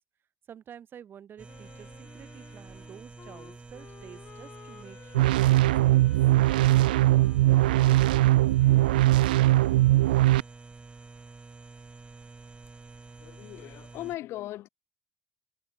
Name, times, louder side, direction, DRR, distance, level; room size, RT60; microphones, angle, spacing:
voice 1, 0.5-6.1, right 9 dB, 50° right, 7.6 m, -49 dB
sound 1, 1.4-14.2, right 3 dB, 20° right, 5.0 m, -48 dB
Wind instrument woodwind instrument, 1.5-10.3, left 7 dB, 45° left, 5.5 m, -52 dB
sound 2, 5.1-10.4, right 16 dB, 85° right, 0.4 m, -21 dB
voice 2, 13.2-14.7, left 15 dB, 65° left, 2.8 m, -38 dB
hypercardioid pair, 60°, 5 cm